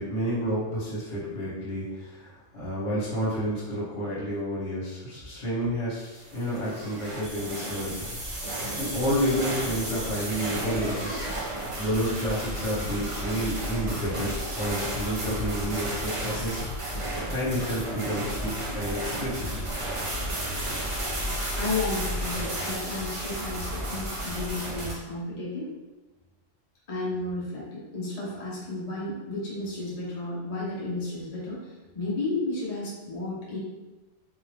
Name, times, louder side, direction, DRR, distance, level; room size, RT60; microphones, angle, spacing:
voice 1, 0.0-8.0 8.4-11.2 11.8-19.5, equal, 60° left, -8 dB, 1.5 m, -30 dB
sound 1, 6.2-24.9, right 1 dB, 35° right, 0.6 m, -32 dB
voice 2, 21.5-25.7 26.9-33.6, left 2 dB, 35° left, -7 dB, 0.9 m, -33 dB
3.7 x 2.6 x 3.3 m, 1.1 s
omnidirectional pair, 1.3 m